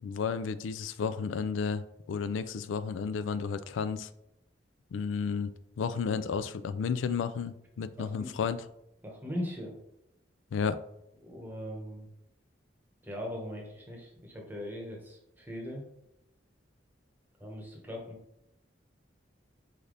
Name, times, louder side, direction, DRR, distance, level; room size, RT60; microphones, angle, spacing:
voice 1, 0.0-4.1 4.9-8.6 10.5-10.8, left 6 dB, 85° left, 13 dB, 0.3 m, -32 dB
voice 2, 8.0-8.3 9.0-9.7 11.2-12.1 13.0-15.8 17.4-18.2, equal, 10° right, -1 dB, 1.0 m, -40 dB
3.9 x 3.3 x 3.9 m, 0.82 s
head